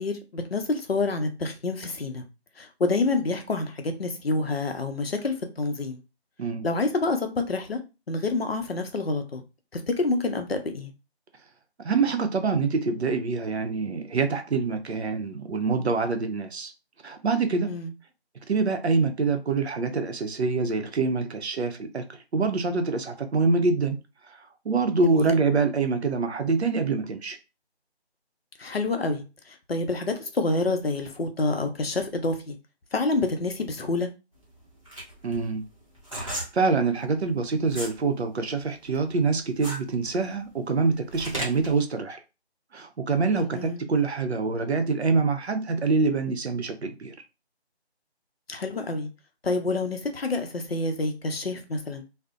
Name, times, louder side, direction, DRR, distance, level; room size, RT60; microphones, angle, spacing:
voice 1, 0.0-2.2 2.6-6.0 6.6-7.8 8.1-9.4 9.7-10.9 17.7-17.9 25.0-25.4 28.6-32.6 32.9-34.1 43.3-43.8 48.5-49.1 49.4-52.0, left 3 dB, 65° left, 0.6 m, -28 dB
voice 2, 11.8-16.7 17.0-17.7 18.5-24.0 24.3-27.4 35.2-35.6 36.1-42.2 42.7-47.1, right 4 dB, 75° right, 0.6 m, -25 dB
sound 1, 34.4-38.0 38.4-41.8, right 1 dB, 30° right, 0.6 m, -36 dB
2.5 x 2.0 x 2.4 m
figure-of-eight pair, 170°, 33 cm